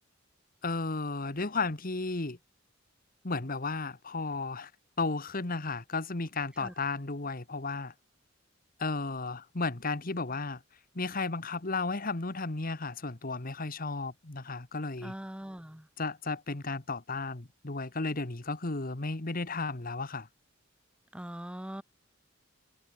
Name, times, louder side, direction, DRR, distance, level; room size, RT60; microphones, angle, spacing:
voice 1, 0.6-2.4 3.2-4.7 5.0-7.9 8.8-10.6 10.9-15.1 16.0-20.3, left 3 dB, 45° left, 1.5 m, -34 dB
voice 2, 15.0-15.9 21.1-21.8, equal, 5° right, 0.9 m, -41 dB
head